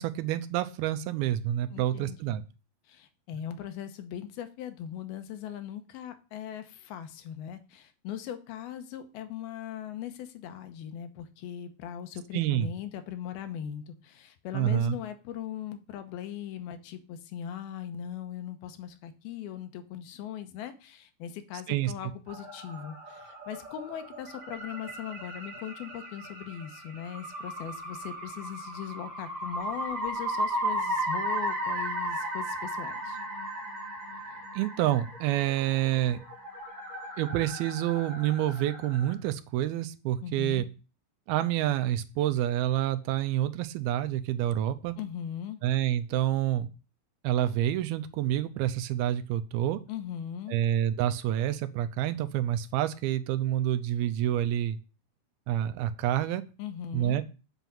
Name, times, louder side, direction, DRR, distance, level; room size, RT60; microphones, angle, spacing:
voice 1, 0.0-2.4 12.3-12.7 14.5-15.0 21.7-21.9 34.6-36.2 37.2-40.6 41.3-45.0 45.6-46.7 47.2-49.8 50.5-54.8 55.5-56.4 56.9-57.2, right 12 dB, 85° right, 10 dB, 2.6 m, -28 dB
voice 2, 1.7-2.4 2.9-33.2 40.2-40.7 45.0-45.6 49.9-50.6 56.6-57.2, left 9 dB, 85° left, 9 dB, 2.8 m, -39 dB
sound 1, 22.3-39.1, right 1 dB, 30° right, 3.6 m, -36 dB
8.1 x 5.5 x 7.6 m, 0.34 s
omnidirectional pair, 4.4 m